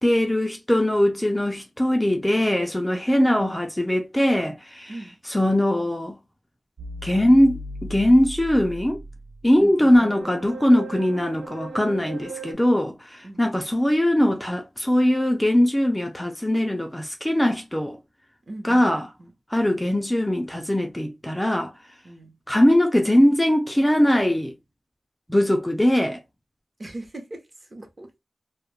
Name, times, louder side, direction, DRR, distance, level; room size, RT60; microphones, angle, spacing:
voice 1, 0.0-4.9 5.3-6.2 7.0-9.0 9.4-18.0 18.7-19.0 19.5-21.7 22.5-24.5 25.3-26.2, left 1 dB, 10° left, 0.4 m, -21 dB
voice 2, 3.1-3.5 4.9-5.2 9.6-10.4 13.2-13.6 18.5-19.3 22.0-22.3 26.8-28.2, right 2 dB, 35° right, 0.8 m, -39 dB
sound 1, 6.8-12.5, right 1 dB, 90° right, 0.4 m, -38 dB
2.2 x 2.2 x 3.0 m
wide cardioid pair, 110°, 0 cm